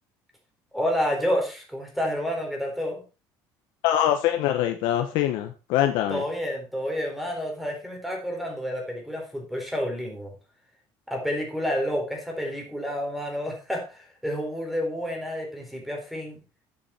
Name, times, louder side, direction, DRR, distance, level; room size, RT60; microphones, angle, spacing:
voice 1, 0.7-3.0 6.1-10.3 11.1-16.4, equal, ahead, 1 dB, 3.9 m, -29 dB
voice 2, 3.8-6.2, left 11 dB, 75° left, 6 dB, 1.2 m, -24 dB
9.7 x 8.6 x 4.4 m, 0.30 s
cardioid pair, 155°, 8 cm